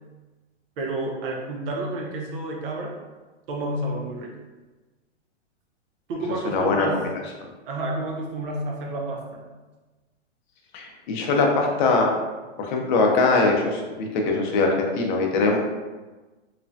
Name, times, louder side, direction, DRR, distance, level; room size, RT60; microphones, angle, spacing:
voice 1, 0.8-3.0 3.5-4.3 6.1-7.1 7.7-9.5, right 1 dB, 50° right, 0 dB, 0.7 m, -30 dB
voice 2, 6.4-6.9 10.7-12.1 12.6-15.6, left 3 dB, 45° left, 1 dB, 0.6 m, -22 dB
3.2 x 2.1 x 2.6 m, 1.2 s
hypercardioid pair, 130°, 35 cm